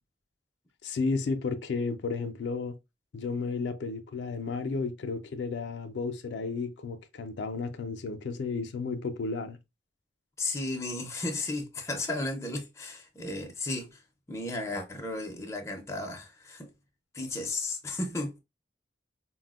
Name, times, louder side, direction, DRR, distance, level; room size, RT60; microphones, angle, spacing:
voice 1, 0.8-2.8 3.1-9.6, left 4 dB, 75° left, 0.4 m, -33 dB
voice 2, 10.4-14.0 14.3-16.7 17.1-18.4, left 2 dB, 15° left, 0.5 m, -34 dB
4.1 x 2.0 x 2.2 m
head